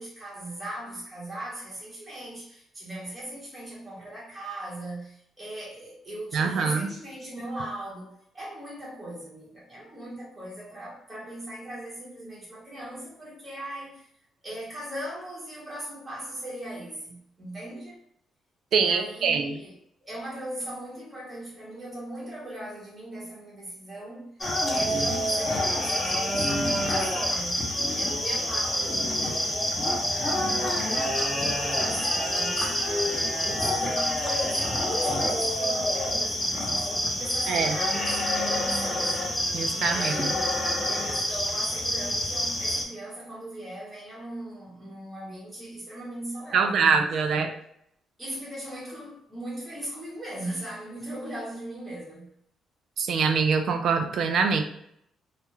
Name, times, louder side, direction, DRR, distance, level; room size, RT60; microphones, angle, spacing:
voice 1, 0.0-14.1 14.4-18.0 18.8-19.7 20.0-24.3 24.7-27.7 27.9-29.6 30.6-33.2 33.5-39.2 39.7-40.5 40.9-47.0 47.3-47.5 48.2-52.3, right 1 dB, 20° right, 1.0 m, -39 dB
voice 2, 6.3-6.9 18.7-19.5 37.5-37.7 39.5-40.3 46.5-47.5 53.0-54.6, right 5 dB, 65° right, 0.4 m, -24 dB
sound 1, 24.4-42.8, left 1 dB, 15° left, 0.7 m, -27 dB
2.3 x 2.1 x 3.0 m
cardioid pair, 90°, 0 cm